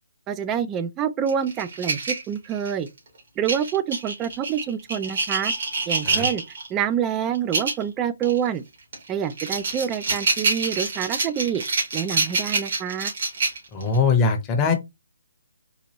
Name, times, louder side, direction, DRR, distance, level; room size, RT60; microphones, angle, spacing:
voice 1, 0.3-2.9 3.4-5.5 5.9-6.4 6.7-8.6 9.1-11.6 11.9-13.1, right 8 dB, 20° right, 0.3 m, -27 dB
sound 1, 1.3-2.9 3.5-6.7 7.3-7.8 8.2-8.4 8.9-14.0, right 3 dB, 55° right, 1.9 m, -26 dB
voice 2, 13.7-14.7, left 4 dB, 20° left, 0.7 m, -21 dB
4.1 x 2.5 x 2.8 m
figure-of-eight pair, 145°, 0 cm